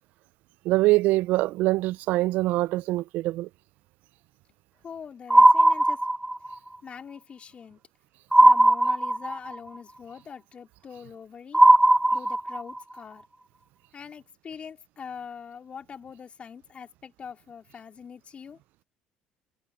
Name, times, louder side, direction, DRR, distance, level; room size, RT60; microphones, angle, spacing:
voice 1, 0.6-3.5, right 18 dB, 70° right, 0.4 m, -24 dB
voice 2, 4.8-6.1 6.8-7.8 8.4-11.6 12.1-13.2 13.9-18.6, left 7 dB, 40° left, 4.2 m, -43 dB
sound 1, 5.3-6.5 8.3-9.6 11.5-12.8, right 1 dB, 10° right, 0.4 m, -17 dB
supercardioid pair, 75°, 3 cm